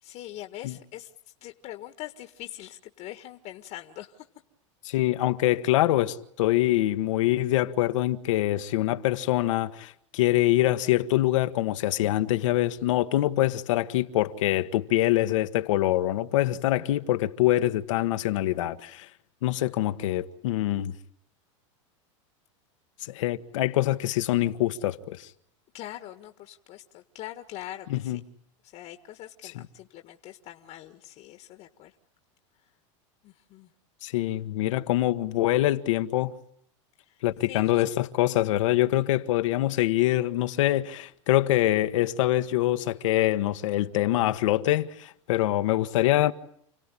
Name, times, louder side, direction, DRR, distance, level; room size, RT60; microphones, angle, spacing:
voice 1, 0.0-1.1 1.4-4.2 25.7-28.2 28.6-31.9 33.2-33.7 37.0-37.2 37.5-37.9, left 14 dB, 45° left, 1.7 m, -43 dB
voice 2, 4.8-19.1 19.4-20.9 23.0-25.3 27.9-28.2 29.5-29.6 34.0-36.3 37.2-46.3, left 15 dB, 75° left, 1.4 m, -24 dB
30.0 x 17.5 x 10.0 m
supercardioid pair, 125°, 16 cm